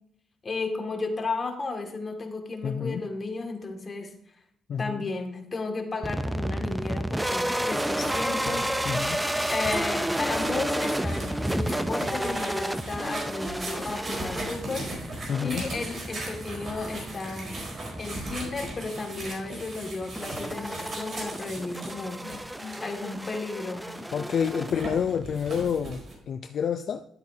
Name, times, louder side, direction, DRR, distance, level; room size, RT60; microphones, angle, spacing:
voice 1, 0.4-4.1 4.8-8.8 9.5-17.6 18.0-22.3 22.8-23.9, left 3 dB, 30° left, 2 dB, 2.1 m, -34 dB
voice 2, 2.6-3.0 4.7-5.0 8.8-9.2 15.3-15.7 22.2-23.1 24.1-27.1, left 7 dB, 60° left, 7 dB, 0.5 m, -29 dB
sound 1, 6.0-25.2, right 1 dB, 5° right, 0.6 m, -31 dB
sound 2, 7.6-23.4 23.9-26.1, right 2 dB, 50° right, 4.2 m, -39 dB
12.0 x 8.3 x 2.8 m, 0.73 s
cardioid pair, 90°, 0 cm